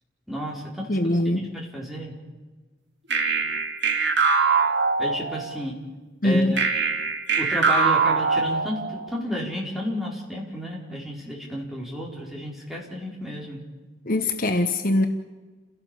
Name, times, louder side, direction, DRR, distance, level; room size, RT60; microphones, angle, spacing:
voice 1, 0.3-1.0 1.5-2.1 5.0-5.7 6.2-6.6 7.4-13.6, equal, ahead, -3 dB, 4.8 m, -32 dB
voice 2, 0.9-1.5 6.2-6.6 14.0-15.1, left 1 dB, 45° left, 7 dB, 1.1 m, -22 dB
sound 1, 3.1-5.6 6.6-9.1, right 4 dB, 65° right, 2.3 m, -23 dB
29.5 x 17.0 x 7.2 m, 1.3 s
head